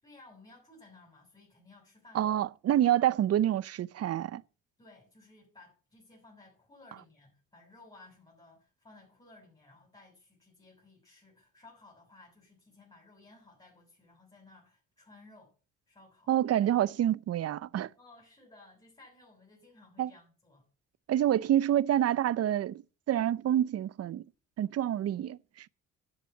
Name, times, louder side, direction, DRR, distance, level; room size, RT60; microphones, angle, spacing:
voice 1, 0.0-2.4 4.8-15.5 15.9-16.3 18.0-20.7, left 2 dB, 15° left, 6.8 m, -57 dB
voice 2, 2.1-4.4 16.3-17.9 20.0-20.1 21.1-22.8 23.1-24.2 24.6-25.7, right 11 dB, 55° right, 0.6 m, -27 dB
10.5 x 7.4 x 7.0 m
cardioid pair, 90°, 30 cm